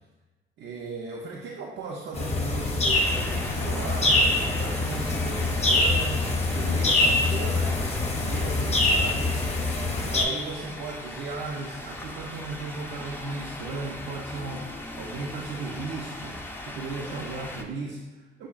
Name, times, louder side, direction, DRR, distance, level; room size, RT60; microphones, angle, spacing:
voice 1, 0.6-9.7 10.0-18.5, right 3 dB, 65° right, -1 dB, 0.5 m, -36 dB
sound 1, 2.1-10.2, left 2 dB, 35° left, 0.8 m, -24 dB
sound 2, 2.9-17.6, left 1 dB, 10° left, 0.4 m, -40 dB
6.2 x 2.3 x 2.3 m, 1.1 s
cardioid pair, 90°, 20 cm